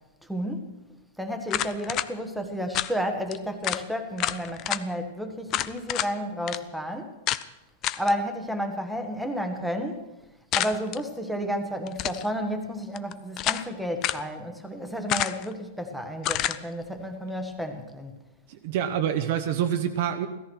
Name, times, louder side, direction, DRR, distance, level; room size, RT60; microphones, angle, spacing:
voice 1, 0.3-0.7 1.2-7.2 8.0-10.1 10.5-18.2, equal, ahead, 4 dB, 1.4 m, -31 dB
sound 1, 1.5-2.1 2.7-2.9 3.3-3.4 3.6-3.8 4.2-4.8 5.5-6.1 6.5-6.6 7.3-7.4 7.8-8.1 10.5-11.0 11.9-12.3 13.0-13.7 14.0-14.3 15.1-15.5 16.2-16.6, left 13 dB, 30° left, 0.5 m, -28 dB
voice 2, 18.5-20.3, right 9 dB, 50° right, 6 dB, 1.0 m, -26 dB
16.0 x 14.0 x 6.3 m, 0.98 s
supercardioid pair, 160°, 0 cm